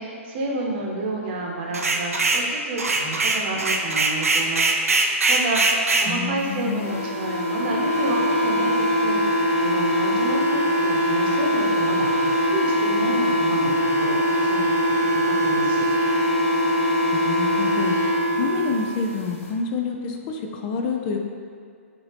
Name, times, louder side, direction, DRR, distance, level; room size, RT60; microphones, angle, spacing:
voice 1, 0.0-15.9, right 2 dB, 45° right, -1 dB, 0.9 m, -30 dB
sound 1, 1.7-2.5 2.8-6.1, right 3 dB, 90° right, 0.4 m, -21 dB
voice 2, 6.1-6.8 17.1-17.9 18.4-21.2, left 5 dB, 35° left, 3 dB, 0.4 m, -28 dB
sound 2, 6.7-18.8, equal, 65° left, 0.9 m, -22 dB
5.7 x 2.7 x 3.3 m, 2.2 s
hypercardioid pair, 130°, 8 cm